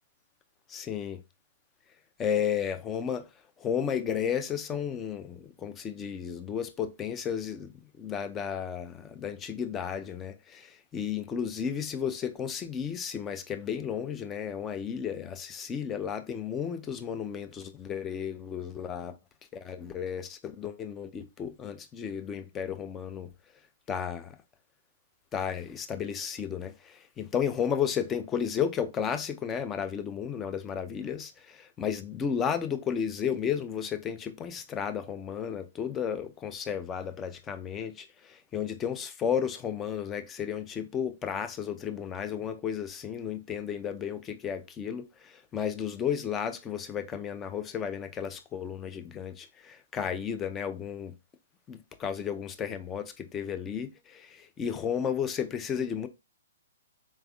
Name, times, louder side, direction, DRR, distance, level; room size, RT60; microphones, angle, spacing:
voice 1, 0.7-1.2 2.2-3.2 3.6-7.7 8.0-19.2 19.5-23.3 23.9-24.3 25.3-51.1 51.7-56.1, left 8 dB, 20° left, 0.5 m, -33 dB
4.2 x 3.4 x 2.3 m
hypercardioid pair, 130°, 0 cm